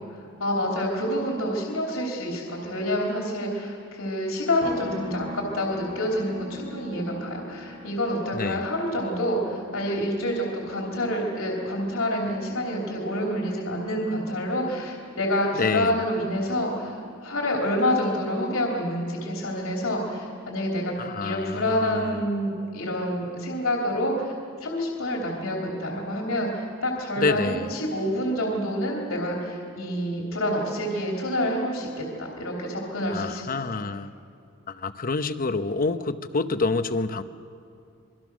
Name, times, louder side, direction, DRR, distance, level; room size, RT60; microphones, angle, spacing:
voice 1, 0.4-17.0 17.2-20.9 21.2-24.3 24.6-33.4, equal, 80° left, -1 dB, 3.4 m, -27 dB
sound 1, 4.6-18.2 18.5-20.7, left 2 dB, 50° right, 6.0 m, -44 dB
voice 2, 8.3-8.6 15.5-16.0 21.0-22.3 27.2-27.7 33.1-34.1 34.7-37.2, left 3 dB, 45° left, 10 dB, 0.9 m, -27 dB
26.0 x 23.0 x 6.2 m, 2.5 s
head